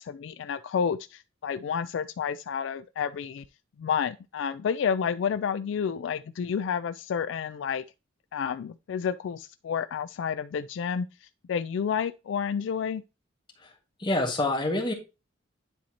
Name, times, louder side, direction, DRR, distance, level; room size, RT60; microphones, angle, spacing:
voice 1, 0.0-3.4 3.8-7.8 8.3-13.0, left 7 dB, 65° left, 0.3 m, -30 dB
voice 2, 14.0-14.9, left 2 dB, 25° left, 1.8 m, -26 dB
10.0 x 4.2 x 2.9 m
head